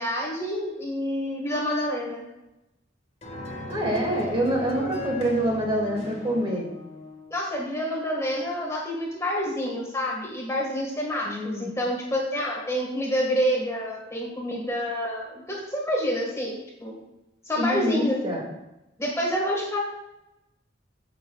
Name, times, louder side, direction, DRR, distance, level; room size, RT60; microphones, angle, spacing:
voice 1, 0.0-2.2 7.3-16.6 16.8-17.0 17.5-18.2 19.0-19.8, equal, 15° left, -3 dB, 1.7 m, -28 dB
sound 1, 3.2-7.4, left 2 dB, 35° left, 1.7 m, -37 dB
voice 2, 3.7-6.7 11.2-11.7 17.6-18.4, equal, 30° right, -2 dB, 2.2 m, -26 dB
15.5 x 6.7 x 2.4 m, 0.94 s
head